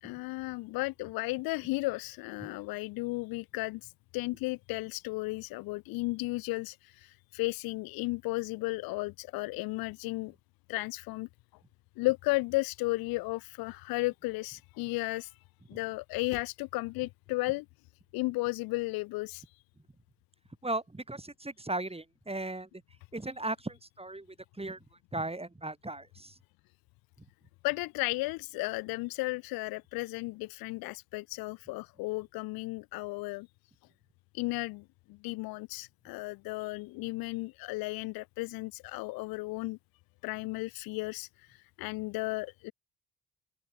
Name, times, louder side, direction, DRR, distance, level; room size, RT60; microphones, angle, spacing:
voice 1, 0.0-10.3 10.7-11.3 12.0-15.3 15.7-17.6 18.1-19.4 27.6-33.5 34.3-39.8 40.2-42.7, left 22 dB, 80° left, 1.0 m, -34 dB
voice 2, 20.6-22.7 23.1-24.3 24.6-24.8 25.1-26.4, right 2 dB, 15° right, 2.5 m, -36 dB
open air
hypercardioid pair, 45°, 35 cm